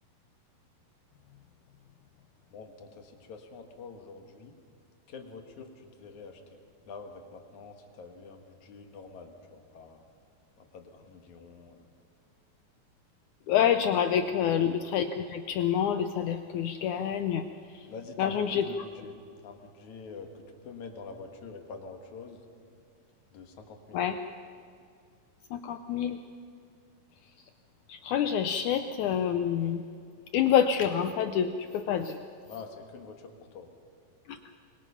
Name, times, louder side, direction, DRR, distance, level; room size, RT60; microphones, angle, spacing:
voice 1, 2.5-4.5 5.1-6.6 6.9-10.0 10.6-11.9 14.2-14.5 17.9-19.2 19.4-22.4 23.3-24.2 32.4-33.7, left 4 dB, 55° left, 4 dB, 2.8 m, -46 dB
voice 2, 13.5-17.5 17.7-17.8 18.2-18.6 23.9-24.2 25.5-26.2 27.9-29.8 30.3-32.2 34.3-34.4, left 8 dB, 85° left, 9 dB, 1.7 m, -27 dB
26.5 x 23.0 x 5.8 m, 2.3 s
omnidirectional pair, 4.3 m